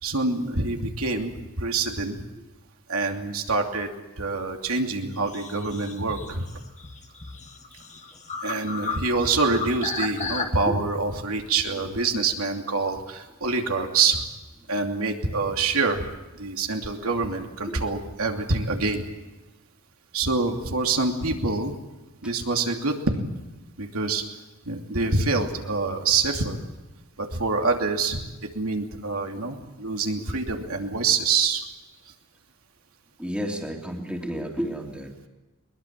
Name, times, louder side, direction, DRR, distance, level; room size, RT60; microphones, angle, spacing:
voice 1, 0.0-2.2 2.9-3.9 4.2-6.5 8.4-14.2 14.7-16.1 16.4-19.0 20.1-21.7 22.2-23.3 23.8-24.2 24.7-26.6 27.2-28.3 28.5-31.6, right 3 dB, 75° right, 3 dB, 2.8 m, -26 dB
sound 1, 5.1-10.4, left 4 dB, 30° left, 2.1 m, -34 dB
voice 2, 33.2-35.3, equal, 5° right, 1 dB, 2.9 m, -31 dB
22.0 x 21.5 x 7.6 m, 1.1 s
head